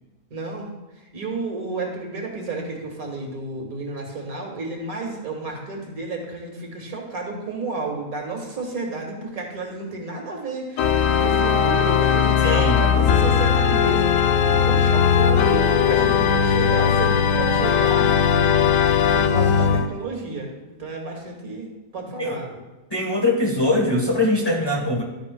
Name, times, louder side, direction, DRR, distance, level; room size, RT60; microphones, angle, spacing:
voice 1, 0.3-18.1 19.1-20.5 20.8-22.6, right 3 dB, 75° right, 1 dB, 2.2 m, -31 dB
Organ, 10.8-19.9, left 7 dB, 70° left, 1.0 m, -18 dB
voice 2, 12.4-12.8 22.2-22.4 22.9-25.0, left 1 dB, 20° left, 0 dB, 1.1 m, -22 dB
12.0 x 9.5 x 2.3 m, 1.1 s
omnidirectional pair, 1.5 m